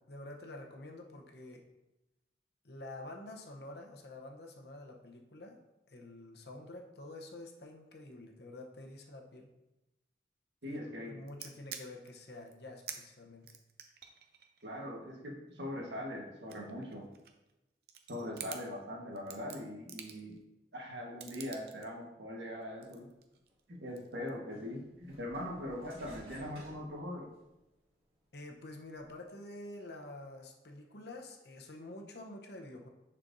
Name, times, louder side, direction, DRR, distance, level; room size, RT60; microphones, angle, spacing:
voice 1, 0.1-1.7 2.6-5.6 5.9-9.5 10.7-13.5 28.3-32.9, left 2 dB, 70° left, 2 dB, 0.9 m, -48 dB
voice 2, 10.6-11.2 14.6-17.1 18.1-20.4 20.7-23.1 23.7-27.3, left 1 dB, 85° right, -1 dB, 1.4 m, -41 dB
sound 1, 11.3-12.1 12.5-12.6 12.9-13.0 13.4-15.8 16.3-17.5 17.8-18.6 19.1-20.4 21.2-21.9 22.6-23.6 24.0-24.3, right 8 dB, 60° right, 0.6 m, -47 dB
sound 2, 23.5-23.6 24.5-27.6 28.1-29.1, equal, 35° right, 2.0 m, -56 dB
10.0 x 4.4 x 2.7 m, 0.97 s
head